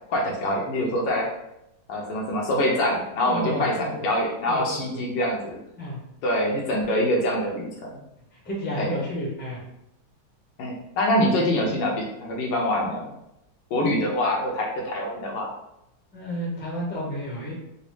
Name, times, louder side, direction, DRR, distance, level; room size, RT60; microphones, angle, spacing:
voice 1, 0.1-1.3 1.9-5.6 6.2-8.0 8.8-9.0 10.6-13.1 13.7-15.5, left 1 dB, 75° left, -1 dB, 1.4 m, -25 dB
voice 2, 3.2-4.0 4.5-5.0 5.8-6.0 8.4-9.6 16.1-17.5, equal, 10° left, -5 dB, 0.7 m, -31 dB
4.0 x 2.3 x 3.1 m, 0.85 s
omnidirectional pair, 2.0 m